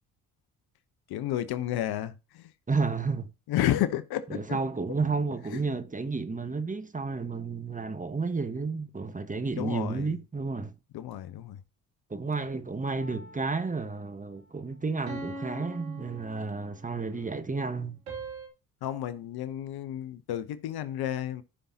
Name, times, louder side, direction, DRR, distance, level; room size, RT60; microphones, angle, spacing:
voice 1, 1.1-2.5 3.5-4.6 5.5-5.6 9.6-10.2 10.9-11.6 17.1-17.3 18.8-21.4, left 12 dB, 60° left, 0.9 m, -31 dB
voice 2, 2.7-3.3 4.3-10.7 12.1-18.0, right 4 dB, 20° right, 1.2 m, -31 dB
sound 1, 12.9-13.9 15.1-17.0 18.1-18.5, right 2 dB, 85° right, 3.1 m, -42 dB
14.5 x 5.5 x 2.8 m
hypercardioid pair, 50°, 43 cm